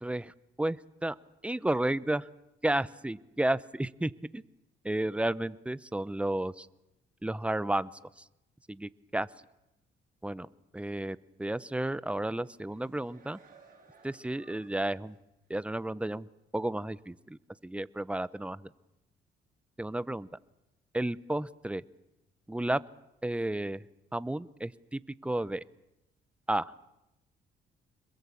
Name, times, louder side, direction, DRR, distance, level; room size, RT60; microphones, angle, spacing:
voice 1, 0.0-1.2 1.4-2.3 2.6-4.4 4.8-6.7 7.2-7.9 8.2-8.3 8.7-9.3 10.2-10.5 10.7-13.4 14.0-15.2 15.5-16.3 16.5-18.7 19.8-20.3 20.9-21.8 22.5-22.8 23.2-23.8 24.1-25.6 26.5-26.7, right 1 dB, 5° right, 17 dB, 0.8 m, -32 dB
sound 1, 12.4-15.1 15.5-15.7, right 4 dB, 45° right, 6.7 m, -60 dB
26.0 x 22.0 x 8.5 m, 0.93 s
cardioid pair, 90°, 20 cm